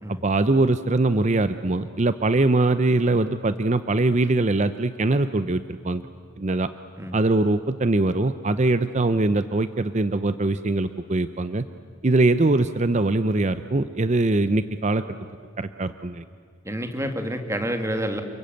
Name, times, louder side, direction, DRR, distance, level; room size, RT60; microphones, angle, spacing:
voice 1, 0.1-6.1 6.4-6.7 7.1-11.6 12.0-15.0 15.6-16.2, right 2 dB, 35° right, 12 dB, 0.6 m, -22 dB
voice 2, 16.6-18.2, equal, 15° right, 6 dB, 2.1 m, -28 dB
29.0 x 22.5 x 9.1 m, 2.2 s
head